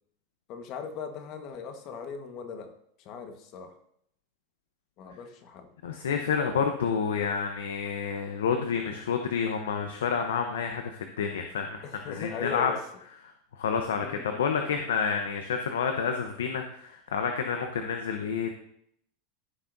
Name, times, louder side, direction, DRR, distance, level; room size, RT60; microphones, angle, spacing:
voice 1, 0.5-3.8 5.0-5.7 11.8-12.8 14.0-14.5, left 6 dB, 50° left, 6 dB, 1.5 m, -39 dB
voice 2, 5.8-12.7 13.6-18.5, left 6 dB, 85° left, 5 dB, 0.9 m, -29 dB
15.0 x 5.9 x 2.7 m, 0.70 s
hypercardioid pair, 110°, 0 cm